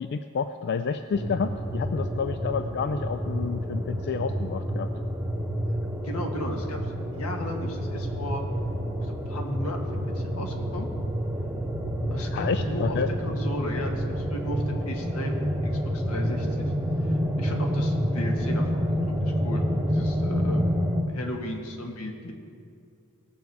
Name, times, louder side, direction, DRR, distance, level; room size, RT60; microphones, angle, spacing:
voice 1, 0.0-4.9 12.3-13.1, left 5 dB, 50° left, 9 dB, 0.3 m, -29 dB
sound 1, 1.1-21.0, equal, 10° right, 0.9 m, -28 dB
voice 2, 6.0-8.4 9.0-10.9 12.1-13.0 13.2-15.5 15.9-16.7 17.0-19.6 19.9-22.3, left 1 dB, 85° left, 2 dB, 1.6 m, -35 dB
18.0 x 7.0 x 4.7 m, 2.4 s
head